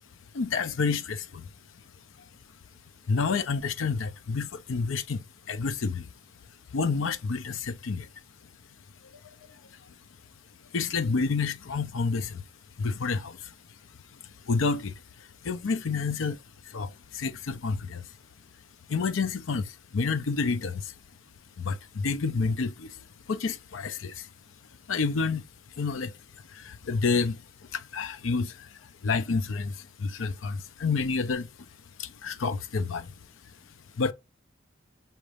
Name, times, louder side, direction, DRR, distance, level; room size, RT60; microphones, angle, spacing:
voice 1, 0.3-1.5 3.1-6.1 6.7-8.1 9.5-9.8 10.7-12.4 12.8-13.5 14.5-16.4 16.7-18.1 18.9-20.9 21.6-23.0 23.3-24.3 24.9-25.4 25.8-26.1 26.5-31.5 32.0-33.1 34.0-34.1, left 4 dB, 80° left, 0.5 m, -29 dB
5.8 x 2.5 x 3.1 m
head